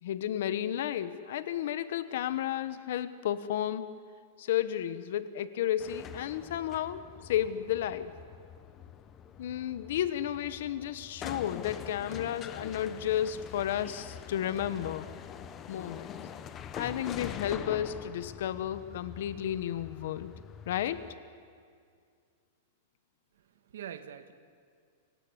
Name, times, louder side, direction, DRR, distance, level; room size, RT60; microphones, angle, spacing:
voice 1, 0.0-3.9 4.4-8.1 9.4-15.1 15.7-16.2 16.7-20.3 20.7-21.1, left 11 dB, 55° left, 14 dB, 1.0 m, -32 dB
sound 1, 5.8-21.1, left 8 dB, 15° left, 0.9 m, -45 dB
voice 2, 23.3-24.3, right 9 dB, 75° right, 10 dB, 1.6 m, -44 dB
28.0 x 16.5 x 9.9 m, 2.2 s
supercardioid pair, 180°, 0 cm